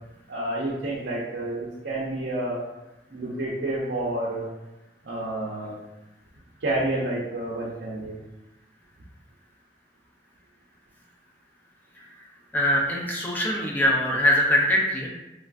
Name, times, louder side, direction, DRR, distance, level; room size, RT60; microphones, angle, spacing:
voice 1, 0.3-2.6 3.1-4.5 5.0-5.8 6.6-8.1, right 1 dB, 80° right, -6 dB, 0.6 m, -29 dB
voice 2, 12.5-15.1, left 1 dB, 10° left, -2 dB, 0.4 m, -22 dB
3.2 x 2.4 x 2.4 m, 0.98 s
head